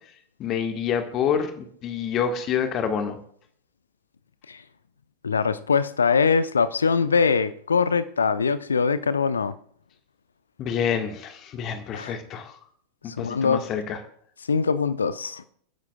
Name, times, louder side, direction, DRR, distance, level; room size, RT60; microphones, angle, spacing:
voice 1, 0.4-3.2 10.6-12.5 13.0-14.0, left 7 dB, 35° left, 1.6 m, -27 dB
voice 2, 5.2-9.5 11.9-12.1 13.1-13.6 14.5-15.4, left 5 dB, 75° left, 0.6 m, -22 dB
29.5 x 10.5 x 2.4 m
figure-of-eight pair, 90°, 0 cm